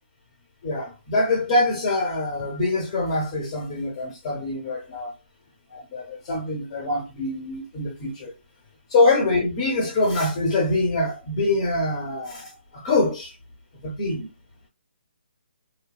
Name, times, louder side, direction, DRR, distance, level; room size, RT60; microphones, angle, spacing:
voice 1, 0.6-5.1 5.7-8.3 8.9-13.3 13.8-14.3, left 2 dB, 25° left, 0.7 m, -24 dB
3.0 x 2.2 x 2.3 m
hypercardioid pair, 165°, 6 cm